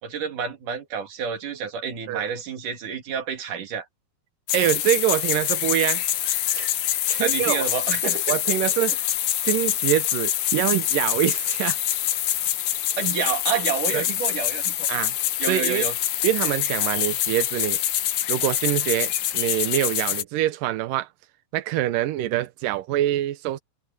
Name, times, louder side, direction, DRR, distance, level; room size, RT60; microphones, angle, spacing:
voice 1, 0.0-3.9 7.2-8.4 13.0-14.9 15.4-15.9, right 7 dB, 50° right, 3.8 m, -29 dB
sound 1, 4.5-20.2, left 12 dB, 90° left, 1.6 m, -25 dB
voice 2, 4.5-6.0 6.5-6.7 7.1-7.7 8.3-9.0 9.5-11.8 13.9-14.1 14.9-15.1 15.5-15.9 16.2-17.8 18.3-21.1 21.5-23.6, right 14 dB, 75° right, 2.0 m, -25 dB
omnidirectional pair, 5.0 m